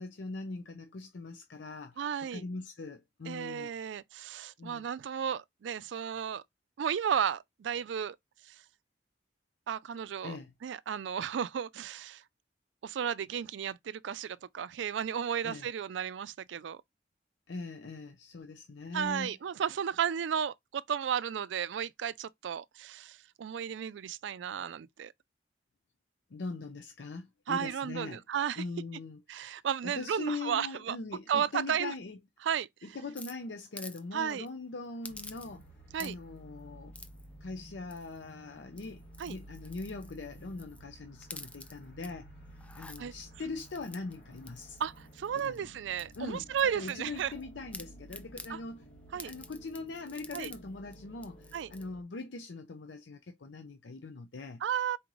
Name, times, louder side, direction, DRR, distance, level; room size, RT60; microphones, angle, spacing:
voice 1, 0.0-3.7 4.6-4.9 10.2-10.5 15.4-15.7 17.5-19.4 26.3-28.2 28.6-32.2 32.8-35.6 36.0-37.0 37.4-42.3 42.7-44.8 45.3-45.6 46.2-46.5 46.7-48.8 49.1-54.6, left 3 dB, 75° left, 0.6 m, -41 dB
voice 2, 2.0-2.4 3.3-6.4 6.8-8.2 8.5-8.6 9.7-10.4 10.6-12.2 12.8-16.8 18.9-25.1 27.5-28.6 29.3-31.0 31.3-31.9 32.4-32.7 34.1-34.4 35.9-36.1 39.2-39.4 43.0-43.1 44.8-47.3 48.5-48.6 49.1-49.3 50.3-50.5 51.5-51.7 54.6-55.0, right 8 dB, 80° right, 0.3 m, -33 dB
sound 1, 33.2-34.0 34.3-34.5 35.0-35.7 35.9-36.4 36.9-37.3 37.9-38.3 38.7-40.8 41.2-42.1 42.5-43.0 43.6-45.6 46.0-47.4 47.7-48.5 49.2-50.6 50.9-51.0 51.2-51.8, left 2 dB, 5° left, 0.3 m, -49 dB
sound 2, 35.1-52.0, right 1 dB, 55° left, 1.5 m, -53 dB
4.2 x 3.1 x 3.8 m
head